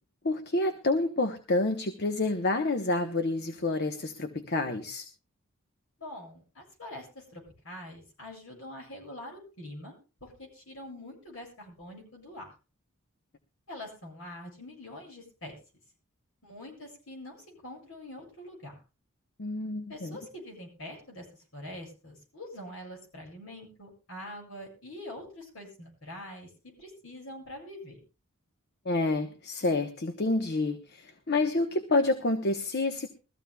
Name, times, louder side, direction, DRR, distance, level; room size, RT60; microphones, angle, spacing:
voice 1, 0.2-5.0 19.4-20.2 28.8-33.1, left 2 dB, 50° left, 6 dB, 1.0 m, -28 dB
voice 2, 6.0-9.9 10.2-12.5 13.7-15.6 16.4-18.8 19.9-21.2 21.5-26.5 26.8-28.0, left 1 dB, 70° left, 1 dB, 7.9 m, -44 dB
22.0 x 14.5 x 2.3 m, 0.33 s
head